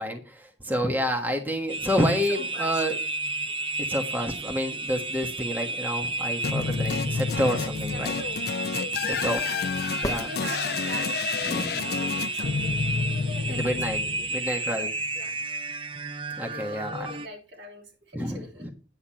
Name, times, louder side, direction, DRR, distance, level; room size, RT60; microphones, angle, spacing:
voice 1, 0.0-3.0 3.9-8.1 9.2-9.4 10.0-10.3 11.4-11.8 13.5-14.0 14.3-14.9 16.4-17.1 18.1-18.7, equal, 10° right, 1.4 m, -28 dB
voice 2, 0.9-1.2 2.3-2.8 7.9-15.4 16.4-18.7, left 1 dB, 70° right, 3.3 m, -42 dB
sound 1, 1.7-17.3, right 3 dB, 25° right, 0.5 m, -32 dB
sound 2, 6.4-14.7, left 5 dB, 50° left, 0.4 m, -30 dB
sound 3, 10.0-11.2 15.0-15.1, equal, 20° left, 1.1 m, -35 dB
10.0 x 8.5 x 4.3 m
head